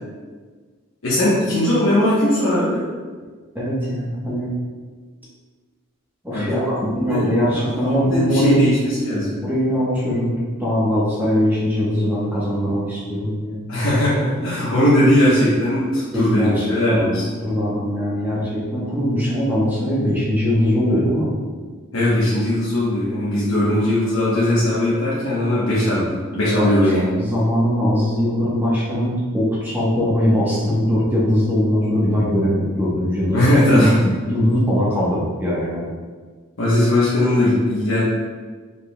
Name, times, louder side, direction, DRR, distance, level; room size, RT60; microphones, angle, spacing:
voice 1, 1.0-2.8 6.3-7.3 7.6-9.4 13.7-17.2 21.9-27.1 33.3-33.9 36.6-38.0, left 1 dB, 70° left, -9 dB, 1.0 m, -19 dB
voice 2, 3.5-4.5 6.2-8.6 9.4-10.3 10.6-13.6 16.1-17.1 17.4-21.3 26.6-35.9, equal, 10° right, -8 dB, 1.0 m, -21 dB
5.2 x 4.2 x 2.2 m, 1.5 s
head